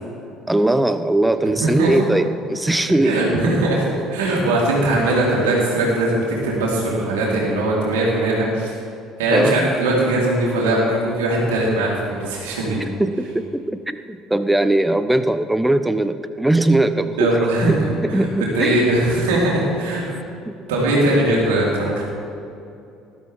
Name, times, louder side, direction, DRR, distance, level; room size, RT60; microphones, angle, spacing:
voice 1, 0.5-3.2 9.3-9.7 13.0-18.8 20.5-20.6, right 1 dB, 5° right, 11 dB, 0.8 m, -20 dB
voice 2, 1.6-1.9 3.0-8.7 9.2-12.8 17.2-18.3 18.5-20.1 20.7-22.0, right 1 dB, 65° right, -4 dB, 4.0 m, -20 dB
19.5 x 13.0 x 3.7 m, 2.6 s
figure-of-eight pair, 55°, 0 cm